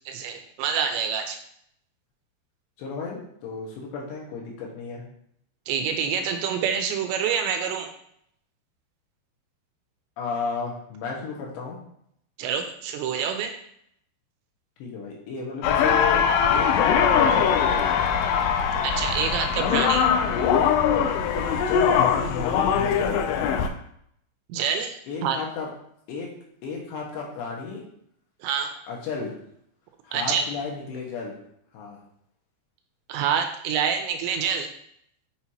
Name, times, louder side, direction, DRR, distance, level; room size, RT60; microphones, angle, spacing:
voice 1, 0.1-1.4 5.7-7.9 12.4-13.6 18.8-20.1 24.5-25.4 28.4-28.7 30.1-30.4 33.1-34.7, right 7 dB, 80° right, 5 dB, 2.8 m, -27 dB
voice 2, 2.8-5.0 10.2-11.8 14.8-16.2 16.5-17.5 21.4-23.2 25.1-25.7 26.1-26.3 26.6-27.8 28.9-29.4 30.0-31.4 31.7-32.0, left 5 dB, 75° left, -2 dB, 3.5 m, -33 dB
sound 1, 15.6-23.7, left 7 dB, 90° left, 3.1 m, -21 dB
7.2 x 6.3 x 2.9 m, 0.70 s
omnidirectional pair, 5.3 m